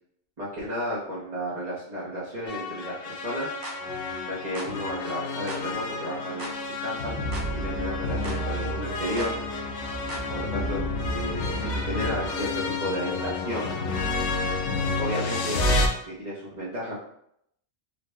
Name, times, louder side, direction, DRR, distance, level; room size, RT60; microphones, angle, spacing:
voice 1, 0.4-3.5 4.2-7.1 7.5-9.4 10.3-10.8 11.1-13.7 15.0-15.6 16.0-17.0, equal, 40° right, -8 dB, 0.8 m, -33 dB
sound 1, 2.5-15.9, left 2 dB, 90° left, 0.9 m, -29 dB
sound 2, 3.6-3.8 4.5-4.7 5.5-5.7 6.4-6.6 7.3-7.5 8.2-8.4 9.2-9.3 10.1-10.3, right 2 dB, 65° right, 1.0 m, -38 dB
3.9 x 2.1 x 3.3 m, 0.73 s
omnidirectional pair, 1.1 m